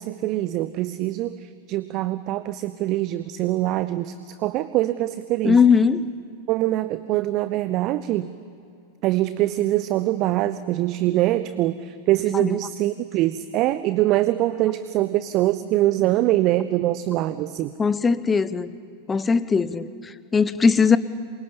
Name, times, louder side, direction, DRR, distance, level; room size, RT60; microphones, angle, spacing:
voice 1, 0.0-5.6 6.5-8.3 9.0-17.7, right 15 dB, 40° right, 14 dB, 0.8 m, -23 dB
voice 2, 5.4-6.0 12.3-12.5 17.8-18.7 19.1-21.0, left 5 dB, 15° left, 15 dB, 1.0 m, -19 dB
27.0 x 24.5 x 8.8 m, 2.5 s
figure-of-eight pair, 90°, 0 cm